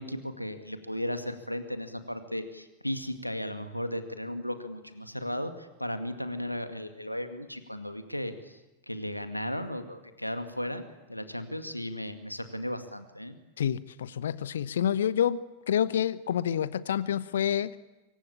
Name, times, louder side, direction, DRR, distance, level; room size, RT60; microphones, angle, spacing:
voice 1, 0.0-8.6 8.9-10.8 11.1-13.4, left 1 dB, 90° left, 8 dB, 2.0 m, -35 dB
voice 2, 13.6-17.7, left 9 dB, 65° left, 18 dB, 0.9 m, -28 dB
25.0 x 23.5 x 8.7 m, 1.0 s
figure-of-eight pair, 90°, 0 cm